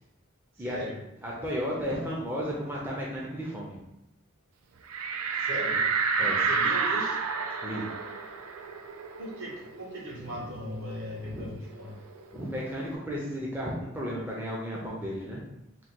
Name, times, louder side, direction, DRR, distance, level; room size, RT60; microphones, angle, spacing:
voice 1, 0.5-1.0 5.4-5.9 6.2-7.2 9.2-12.0, equal, 65° right, -4 dB, 1.2 m, -38 dB
voice 2, 1.2-3.8 6.2-6.4 7.6-7.9 10.3-10.4 11.2-11.5 12.3-15.4, equal, 10° right, -5 dB, 0.5 m, -34 dB
sound 1, 4.9-10.1 10.4-10.5 10.9-12.5, right 5 dB, 85° right, 0.4 m, -30 dB
3.7 x 2.2 x 4.4 m, 0.87 s
head